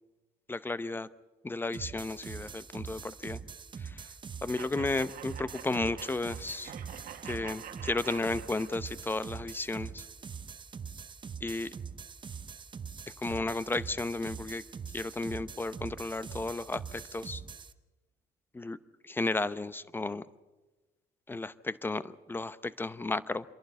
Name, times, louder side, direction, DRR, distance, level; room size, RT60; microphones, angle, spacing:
voice 1, 0.5-1.1 1.4-3.4 3.8-4.0 4.4-6.7 7.2-10.0 11.4-11.7 13.2-14.6 14.9-17.4 18.5-18.8 19.0-20.2 21.3-23.4, left 2 dB, 10° left, 15 dB, 0.7 m, -33 dB
sound 1, 1.7-17.7, right 6 dB, 30° right, 0.8 m, -43 dB
sound 2, 4.6-9.2, right 9 dB, 55° right, 1.5 m, -47 dB
27.0 x 11.5 x 9.5 m, 1.2 s
cardioid pair, 110°, 17 cm